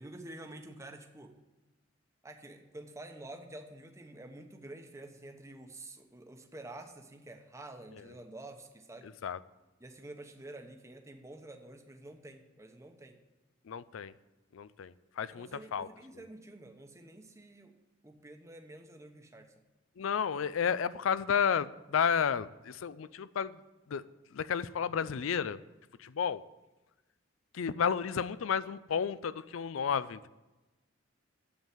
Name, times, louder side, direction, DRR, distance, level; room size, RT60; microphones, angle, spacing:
voice 1, 0.0-1.4 2.2-9.1 9.8-13.2 15.3-17.8 18.0-19.5, right 1 dB, 15° right, 5 dB, 1.0 m, -49 dB
voice 2, 13.7-14.1 14.5-15.9 20.0-23.6 23.9-24.0 24.3-25.6 26.0-26.4 27.5-30.3, left 7 dB, 85° left, 16 dB, 0.4 m, -32 dB
8.6 x 7.3 x 7.6 m, 1.1 s
head